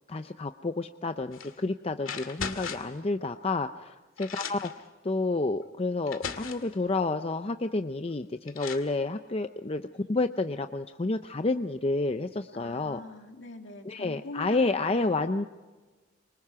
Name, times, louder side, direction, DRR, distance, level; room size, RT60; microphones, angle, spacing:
voice 1, 0.1-4.7 5.0-13.0 13.9-15.4, left 3 dB, 30° left, 8 dB, 0.6 m, -30 dB
sound 1, 1.3-1.6 2.0-3.0 3.8-3.9 4.2-4.8 5.6-5.7 6.1-6.7 8.0-8.1 8.5-8.9, left 6 dB, 75° left, 2.1 m, -38 dB
voice 2, 12.5-15.3, left 2 dB, 60° left, 4 dB, 2.4 m, -43 dB
26.0 x 24.5 x 4.8 m, 1.2 s
head